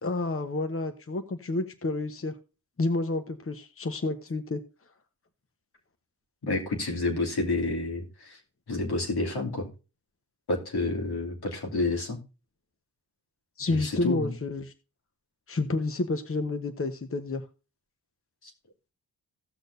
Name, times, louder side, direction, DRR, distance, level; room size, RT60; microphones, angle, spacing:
voice 1, 0.0-2.3 2.8-4.6 13.6-14.7 15.5-17.4, left 2 dB, 35° left, 8 dB, 1.1 m, -29 dB
voice 2, 6.4-8.4 8.7-9.7 10.5-12.2 13.7-14.3 18.4-18.5, left 2 dB, 75° left, 0 dB, 2.6 m, -29 dB
16.5 x 6.3 x 2.6 m, 0.31 s
cardioid pair, 60°, 39 cm